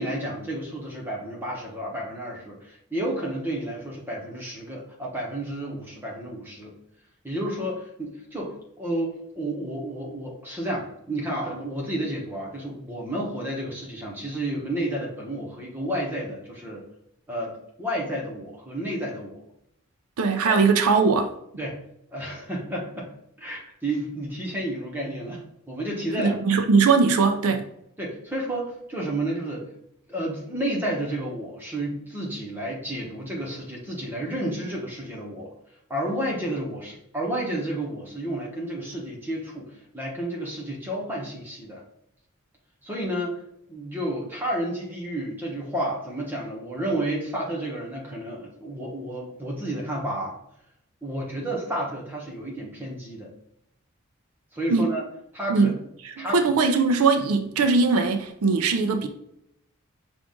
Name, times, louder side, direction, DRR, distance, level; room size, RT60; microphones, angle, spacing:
voice 1, 0.0-6.7 7.2-16.8 17.3-19.4 20.4-20.6 21.6-21.8 22.1-23.1 23.4-26.6 27.5-27.6 28.0-29.7 30.1-35.5 35.9-41.8 42.8-43.4 43.7-50.3 51.0-53.3 54.5-55.0 55.3-55.7 56.2-56.5 57.2-57.3, right 1 dB, 10° right, 1.0 m, -31 dB
voice 2, 20.2-21.3 26.2-27.7 54.7-54.9 55.5-55.8 56.0-59.1, right 4 dB, 80° right, 0.4 m, -20 dB
5.9 x 2.4 x 3.7 m
head